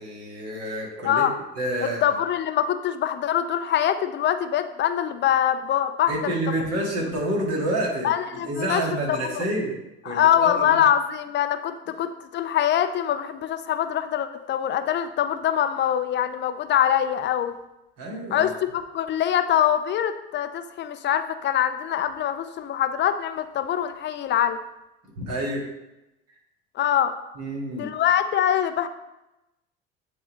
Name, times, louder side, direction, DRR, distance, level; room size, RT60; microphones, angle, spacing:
voice 1, 0.0-1.3 1.6-2.2 6.1-9.7 10.0-10.8 18.0-18.5 25.2-25.6 27.4-27.9, right 1 dB, 50° right, -1 dB, 2.1 m, -28 dB
voice 2, 1.8-6.1 6.5-6.6 8.0-8.8 9.1-9.4 10.1-17.5 18.3-24.6 26.8-27.1 27.7-28.9, left 10 dB, 35° left, 10 dB, 0.5 m, -24 dB
9.4 x 3.9 x 3.1 m, 0.95 s
figure-of-eight pair, 65°, 32 cm